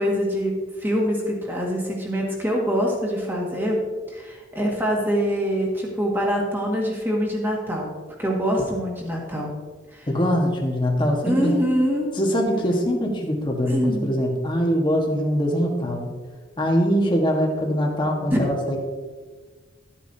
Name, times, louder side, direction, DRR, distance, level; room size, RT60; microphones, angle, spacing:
voice 1, 0.0-3.8 4.1-7.9 8.2-9.5 9.9-10.1 11.2-12.1 13.7-14.1 18.3-18.5, equal, 10° right, -2 dB, 1.9 m, -24 dB
voice 2, 10.1-11.6 12.1-16.1 16.6-18.8, equal, 25° left, 0 dB, 1.4 m, -22 dB
12.5 x 8.5 x 2.8 m, 1.4 s
head